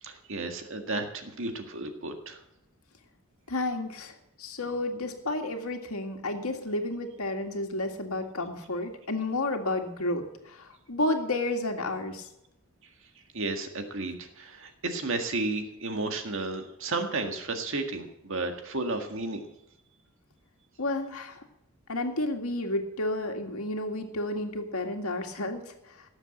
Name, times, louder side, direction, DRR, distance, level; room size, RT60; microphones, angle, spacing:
voice 1, 0.0-2.4 12.8-12.9 13.3-19.4, right 2 dB, 60° right, 5 dB, 1.8 m, -33 dB
voice 2, 3.5-12.3 20.8-21.4 21.9-25.6, left 2 dB, 80° left, 4 dB, 2.0 m, -31 dB
18.0 x 7.4 x 7.8 m, 0.85 s
head